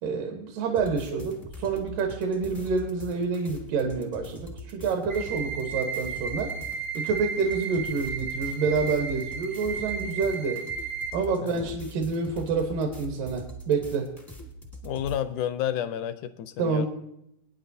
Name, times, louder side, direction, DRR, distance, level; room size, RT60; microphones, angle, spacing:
voice 1, 0.0-6.5 6.9-10.6 11.1-14.1 16.6-16.9, right 4 dB, 80° right, 3 dB, 2.9 m, -28 dB
sound 1, 0.7-15.2, equal, 20° left, 0.4 m, -42 dB
sound 2, 5.1-11.1, right 5 dB, 60° right, 0.9 m, -34 dB
voice 2, 11.4-11.7 14.8-16.9, left 10 dB, 80° left, 12 dB, 1.8 m, -31 dB
23.5 x 9.5 x 2.7 m, 0.79 s
omnidirectional pair, 3.8 m